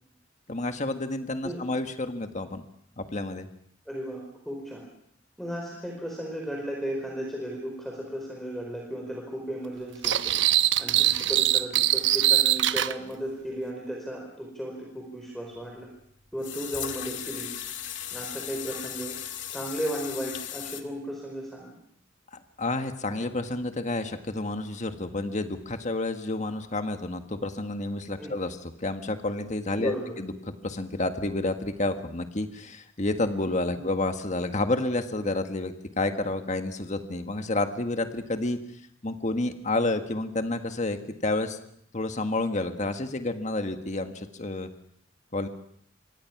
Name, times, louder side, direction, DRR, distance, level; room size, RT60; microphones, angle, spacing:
voice 1, 0.5-2.6 3.0-3.5 22.6-38.6 39.0-41.6 41.9-44.7 45.3-45.5, left 2 dB, 40° left, 7 dB, 1.7 m, -30 dB
voice 2, 3.9-4.8 5.4-10.3 10.8-15.9 16.3-17.5 18.1-19.2 19.5-21.7 28.2-28.3 29.8-30.2 33.7-33.8, equal, ahead, -1 dB, 4.8 m, -35 dB
sound 1, 10.0-12.9, right 12 dB, 70° right, 0.9 m, -22 dB
sound 2, 15.6-15.7 16.4-20.8, left 10 dB, 70° left, 2.2 m, -37 dB
27.0 x 24.0 x 6.0 m, 0.67 s
head